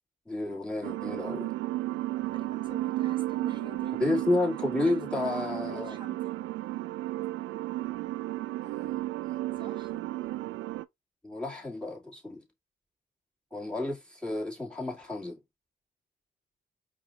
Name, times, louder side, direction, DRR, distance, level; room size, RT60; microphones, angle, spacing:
voice 1, 0.3-1.5 4.0-6.0 8.6-9.0 9.5-9.7 11.2-12.4 13.5-15.4, left 2 dB, 5° left, 2.4 m, -31 dB
sound 1, 0.8-10.8, right 16 dB, 85° right, 0.4 m, -33 dB
voice 2, 2.3-4.3 4.7-6.3 9.6-10.0, right 2 dB, 25° right, 1.5 m, -46 dB
4.8 x 2.5 x 3.9 m
cardioid pair, 90°, 20 cm